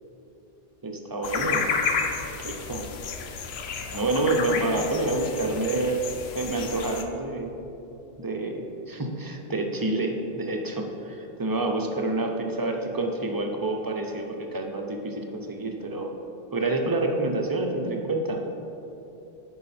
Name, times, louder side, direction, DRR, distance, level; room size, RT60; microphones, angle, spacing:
voice 1, 0.8-1.7 2.4-2.8 3.9-6.0 6.3-7.5 8.2-16.1 16.5-18.4, right 2 dB, 25° right, 2 dB, 0.6 m, -28 dB
sound 1, 1.2-7.0, left 5 dB, 75° left, 0.9 m, -31 dB
10.5 x 4.6 x 4.2 m, 2.9 s
omnidirectional pair, 1.1 m